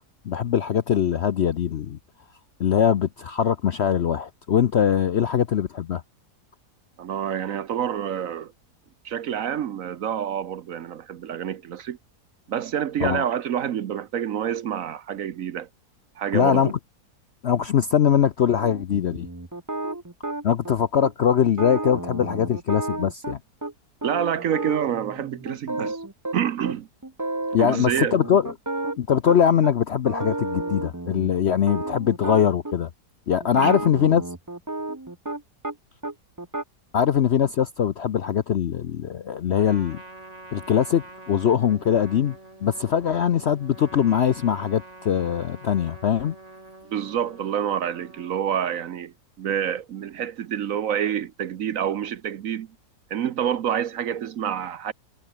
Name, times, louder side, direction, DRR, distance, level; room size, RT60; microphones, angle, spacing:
voice 1, 0.2-2.0 2.6-6.0 13.0-13.3 16.3-16.8 17.4-19.3 20.4-23.4 27.5-28.5 29.0-32.9 33.3-34.2 36.9-40.0 40.5-46.3, left 8 dB, 60° left, 0.7 m, -22 dB
voice 2, 7.0-8.5 9.0-12.0 12.5-15.7 16.2-16.7 24.0-26.0 26.3-26.9 27.6-28.1 33.5-33.8 46.9-52.7 53.1-54.9, right 9 dB, 60° right, 1.1 m, -27 dB
sound 1, 18.6-20.7 21.0-21.1 21.4-23.7 24.0-26.3 26.6-26.7 27.0-27.6 27.9-29.7 30.1-32.7 33.4-35.7 36.0-36.6, right 2 dB, 15° right, 1.0 m, -32 dB
Trumpet, 39.5-48.3, right 2 dB, 45° right, 5.5 m, -45 dB
omnidirectional pair, 1.8 m